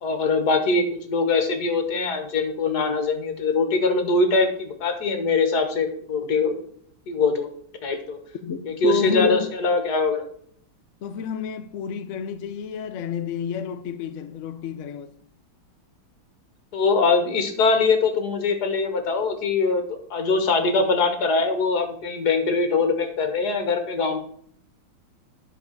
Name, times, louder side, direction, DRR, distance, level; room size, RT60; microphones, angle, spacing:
voice 1, 0.0-6.6 7.1-7.5 7.8-8.2 8.7-10.2 16.7-24.2, left 3 dB, 55° left, 1.9 m, -22 dB
voice 2, 8.4-9.5 11.0-15.1, left 8 dB, 70° left, 0.7 m, -29 dB
10.5 x 4.8 x 6.6 m
omnidirectional pair, 2.2 m